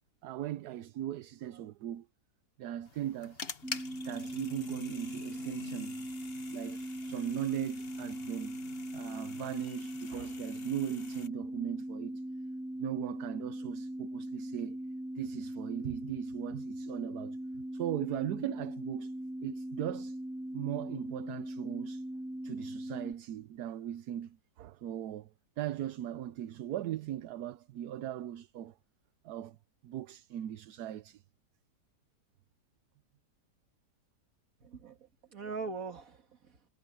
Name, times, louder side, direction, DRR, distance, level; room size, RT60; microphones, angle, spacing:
voice 1, 0.2-2.1 2.6-3.4 4.0-6.0 6.5-8.6 8.9-12.2 12.8-14.8 15.2-17.4 17.7-19.1 19.4-20.2 20.5-22.0 22.4-25.3 25.6-28.7 29.2-29.6 29.8-31.2, right 11 dB, 75° right, 1.2 m, -38 dB
sound 1, 2.8-11.3, left 5 dB, 40° left, 1.4 m, -47 dB
sound 2, 3.6-23.1, right 1 dB, 5° right, 0.4 m, -40 dB
voice 2, 34.6-36.7, right 4 dB, 55° right, 2.3 m, -42 dB
omnidirectional pair, 1.8 m